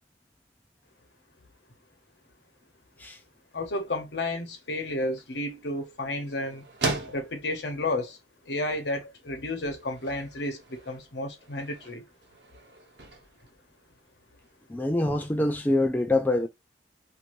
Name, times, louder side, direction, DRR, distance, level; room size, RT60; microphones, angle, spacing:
voice 1, 3.5-6.7 7.1-8.2 8.5-12.0, left 2 dB, 70° left, 0.9 m, -32 dB
sound 1, 4.8-14.5, right 3 dB, 70° right, 1.0 m, -40 dB
voice 2, 14.7-16.5, left 2 dB, 10° left, 0.3 m, -25 dB
2.6 x 2.6 x 3.0 m
head